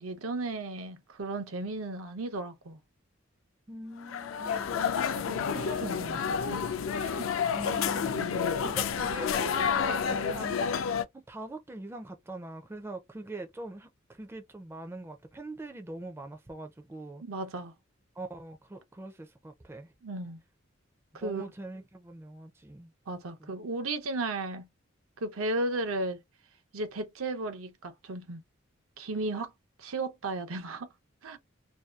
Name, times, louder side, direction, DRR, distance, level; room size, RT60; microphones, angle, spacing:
voice 1, 0.0-2.8 4.9-6.6 7.0-7.3 8.1-8.4 17.2-17.7 20.0-20.4 21.1-21.4 23.1-24.7 25.2-26.2 26.7-28.4 29.0-29.5 29.8-30.9 31.2-31.4, right 2 dB, 85° right, 0.7 m, -35 dB
voice 2, 3.7-4.8 7.5-8.1 8.6-10.9 11.3-13.9 14.2-17.2 18.2-19.9 21.1-22.9 23.4-23.5, right 2 dB, 10° right, 0.4 m, -42 dB
sound 1, 4.0-11.0, left 6 dB, 70° left, 0.4 m, -30 dB
2.7 x 2.2 x 2.3 m
head